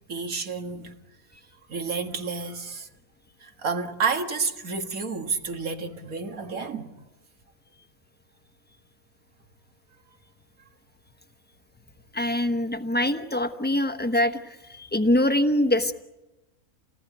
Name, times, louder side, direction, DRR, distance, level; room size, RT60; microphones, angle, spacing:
voice 1, 0.1-0.9 1.7-2.9 3.4-6.9, right 5 dB, 80° right, 2.2 m, -30 dB
voice 2, 12.1-15.9, left 1 dB, 10° left, 1.0 m, -24 dB
29.0 x 19.0 x 9.4 m
omnidirectional pair, 1.5 m